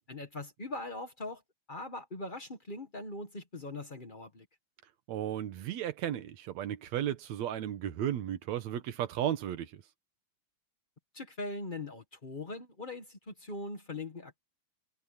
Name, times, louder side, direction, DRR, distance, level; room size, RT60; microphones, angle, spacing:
voice 1, 0.1-1.4 1.7-4.4 11.1-14.4, left 2 dB, 65° left, 0.4 m, -41 dB
voice 2, 5.1-9.8, right 11 dB, 65° right, 2.4 m, -34 dB
omnidirectional pair, 3.5 m